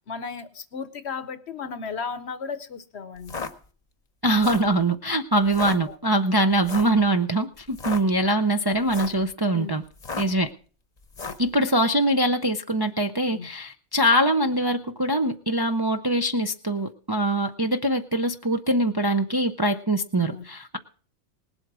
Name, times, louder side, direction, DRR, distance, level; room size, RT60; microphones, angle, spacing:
voice 1, 0.1-3.4 5.9-6.0 9.5-9.8 13.3-13.5 20.2-20.4, left 5 dB, 55° left, 13 dB, 1.1 m, -35 dB
sound 1, 3.2-3.5 4.3-4.7 5.5-5.8 6.6-7.0 7.7-8.0 8.8-9.2 10.0-10.4 11.1-11.5, left 4 dB, 35° left, 1.0 m, -34 dB
voice 2, 4.2-9.8 10.2-10.5 11.4-20.8, right 1 dB, 25° right, 5 dB, 0.5 m, -23 dB
19.0 x 8.0 x 6.1 m, 0.42 s
omnidirectional pair, 1.4 m